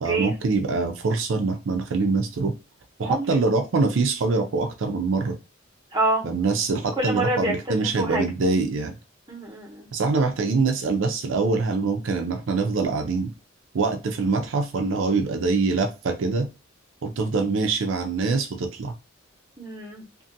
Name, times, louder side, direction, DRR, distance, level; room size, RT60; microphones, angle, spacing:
voice 1, 0.0-2.5 3.0-5.4 6.2-8.9 9.9-13.3 13.7-16.5 17.0-18.9, right 4 dB, 85° right, 0.5 m, -24 dB
voice 2, 5.9-6.2 7.0-8.2 9.3-9.9 19.6-20.0, right 2 dB, 25° right, 1.0 m, -26 dB
2.5 x 2.5 x 2.6 m
head